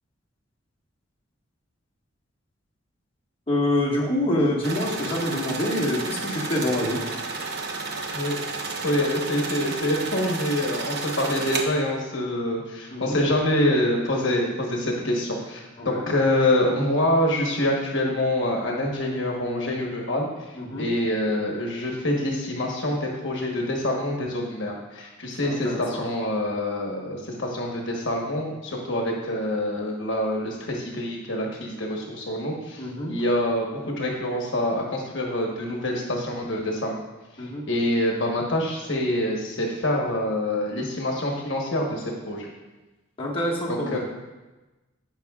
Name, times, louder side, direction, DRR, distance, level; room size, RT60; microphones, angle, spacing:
voice 1, 3.5-7.0 12.9-13.2 15.8-16.1 20.6-20.9 25.4-26.1 32.8-33.2 37.4-37.7 43.2-44.0, left 1 dB, 25° left, -4 dB, 1.6 m, -26 dB
sound 1, 4.6-11.6, right 3 dB, 55° right, 0.9 m, -32 dB
voice 2, 8.8-20.5 20.8-37.0 37.4-42.5 43.9-44.0, left 1 dB, 60° left, 0 dB, 1.2 m, -26 dB
16.5 x 5.9 x 2.4 m, 1.1 s
head